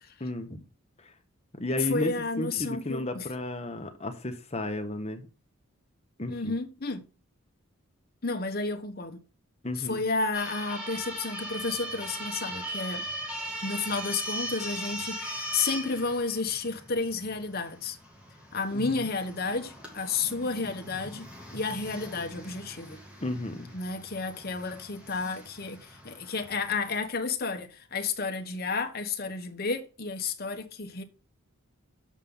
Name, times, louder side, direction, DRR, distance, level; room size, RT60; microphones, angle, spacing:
voice 1, 0.2-0.6 1.0-1.1 1.6-2.1 2.4-5.3 6.2-6.5 9.6-10.0 18.7-19.0 23.2-23.7, left 1 dB, 30° left, 1.2 m, -33 dB
voice 2, 1.8-3.3 6.2-7.0 8.2-9.2 9.8-13.1 13.6-18.0 18.5-21.3 21.5-23.0 23.7-31.0, left 4 dB, 45° left, 1.1 m, -31 dB
sound 1, 10.3-27.0, right 1 dB, 5° right, 2.2 m, -40 dB
7.4 x 5.5 x 5.5 m
head